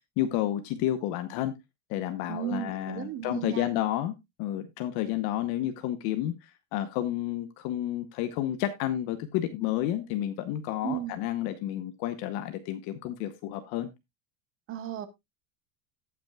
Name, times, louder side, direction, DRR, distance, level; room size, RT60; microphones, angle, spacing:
voice 1, 0.2-1.6 1.9-4.1 4.4-13.9, left 12 dB, 50° left, 10 dB, 0.9 m, -31 dB
voice 2, 2.3-3.7 10.8-11.2 14.7-15.1, right 11 dB, 25° right, 12 dB, 0.8 m, -34 dB
18.0 x 6.0 x 2.3 m, 0.20 s
cardioid pair, 170°, 47 cm